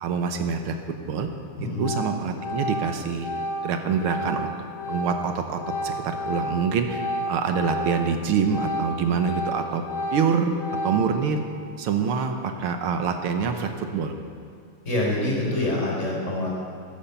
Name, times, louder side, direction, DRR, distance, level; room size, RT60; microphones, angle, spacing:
voice 1, 0.0-1.3 1.8-3.3 3.6-4.5 4.9-9.8 10.1-10.6 10.8-11.4 11.8-14.2, right 6 dB, 75° right, 6 dB, 1.7 m, -26 dB
Organ, 1.3-1.5 1.8-8.2 8.4-11.3, equal, 70° left, 1.8 m, -31 dB
voice 2, 1.6-1.9 14.8-16.6, left 1 dB, 30° left, -3 dB, 4.4 m, -26 dB
14.0 x 10.0 x 6.8 m, 2.2 s
omnidirectional pair, 2.4 m